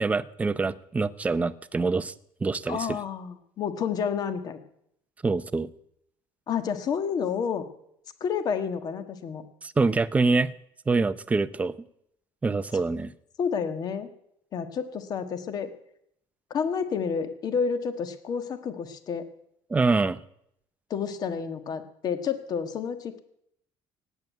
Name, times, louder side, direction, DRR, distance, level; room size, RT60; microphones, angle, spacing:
voice 1, 0.0-2.1 2.4-2.8 5.2-5.7 9.6-10.5 10.9-11.7 12.4-13.1 19.7-20.2, right 3 dB, 15° right, 14 dB, 0.6 m, -25 dB
voice 2, 2.7-4.6 6.5-7.6 8.2-9.4 13.4-14.1 14.5-15.7 16.5-19.3 20.9-23.2, left 6 dB, 40° left, 9 dB, 1.5 m, -30 dB
17.0 x 9.3 x 9.2 m, 0.74 s
cardioid pair, 150°, 11 cm